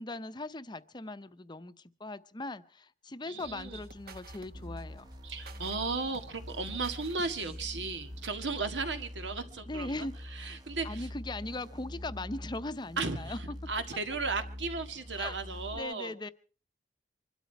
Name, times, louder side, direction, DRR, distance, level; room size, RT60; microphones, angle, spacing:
voice 1, 0.0-5.1 9.7-10.5 10.8-13.6 15.2-15.3 15.7-16.3, left 2 dB, 25° left, 12 dB, 0.7 m, -39 dB
voice 2, 3.3-3.8 5.2-11.1 13.0-16.1, right 4 dB, 85° right, 7 dB, 1.9 m, -35 dB
sound 1, 3.4-8.5, right 2 dB, 55° right, 1.4 m, -51 dB
sound 2, 4.5-15.8, left 1 dB, 25° right, 1.1 m, -44 dB
25.0 x 12.5 x 4.5 m, 0.40 s
head